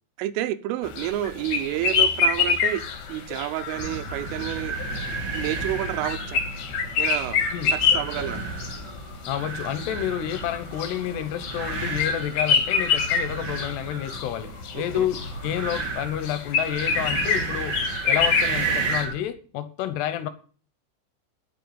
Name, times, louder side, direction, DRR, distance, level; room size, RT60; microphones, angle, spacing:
voice 1, 0.2-2.8 3.1-4.8 5.3-6.4 7.0-8.4 14.8-15.1, right 14 dB, 85° right, 3.4 m, -30 dB
sound 1, 0.8-19.0, left 6 dB, 55° left, 2.4 m, -26 dB
sound 2, 3.7-19.2, right 4 dB, 55° right, 1.2 m, -33 dB
voice 2, 9.3-17.8 18.0-20.3, left 11 dB, 75° left, 2.7 m, -29 dB
10.5 x 6.8 x 8.7 m
omnidirectional pair, 5.7 m